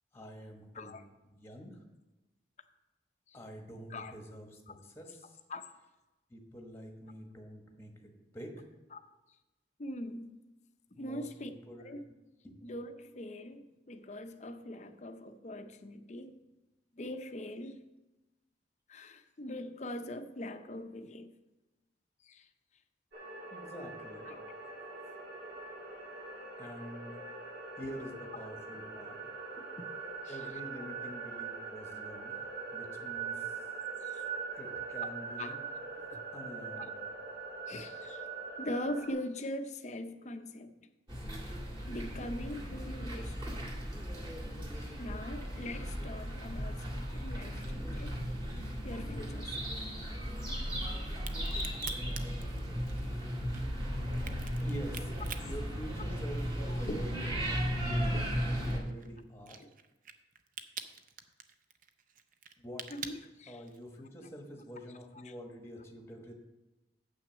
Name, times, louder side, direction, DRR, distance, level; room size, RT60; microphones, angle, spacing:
voice 1, 0.1-1.0 1.3-1.8 3.3-5.4 6.3-8.7 10.9-12.2 12.4-12.6 23.5-24.3 26.6-27.2 27.8-29.2 30.3-32.4 32.7-33.7 34.5-35.6 36.3-37.0 54.6-55.1 55.4-58.2 58.4-59.6 62.6-62.9 63.5-66.4, equal, 15° left, 2 dB, 1.1 m, -47 dB
voice 2, 0.7-1.1 3.3-3.4 3.9-4.1 4.7-4.8 5.5-5.6 8.9-9.0 9.8-10.3 10.9-11.5 11.8-12.0 12.6-16.4 16.9-17.8 18.9-21.3 22.2-22.5 24.3-24.4 29.6-29.7 30.2-30.4 34.0-34.2 35.0-35.1 35.4-35.5 36.1-36.2 36.8-36.9 37.7-38.3 38.6-40.7 41.9-43.7 44.7-48.2 48.8-49.7 51.4-51.6 52.2-52.4 56.7-57.0 58.1-58.2 58.7-58.8 59.6-59.7 62.9-63.6 65.2-65.3, left 1 dB, 35° left, 8 dB, 0.6 m, -42 dB
sound 1, 23.1-39.1, right 5 dB, 60° right, 2.3 m, -42 dB
sound 2, 41.1-58.8, equal, 25° right, 2.0 m, -36 dB
Crack, 51.1-56.6 57.0-64.0, right 7 dB, 45° right, 0.5 m, -47 dB
7.7 x 6.0 x 6.2 m, 1.1 s
head